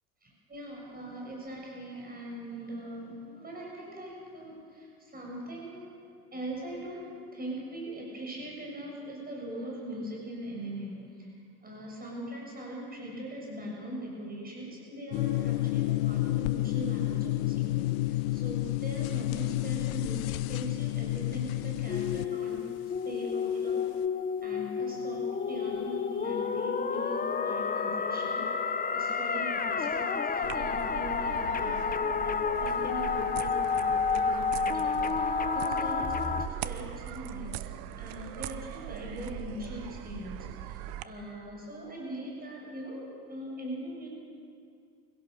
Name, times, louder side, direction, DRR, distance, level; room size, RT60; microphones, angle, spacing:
voice 1, 0.2-6.0 6.3-11.4 11.6-23.9 24.4-28.4 28.9-37.7 38.0-44.1, equal, 20° right, -2 dB, 6.8 m, -41 dB
sound 1, 15.1-22.3, left 17 dB, 65° left, 0.8 m, -30 dB
sound 2, 21.9-36.5, left 5 dB, 20° left, 1.1 m, -30 dB
sound 3, 30.4-41.0, right 14 dB, 50° right, 1.0 m, -40 dB
25.5 x 17.0 x 6.6 m, 2.3 s
hypercardioid pair, 80°, 44 cm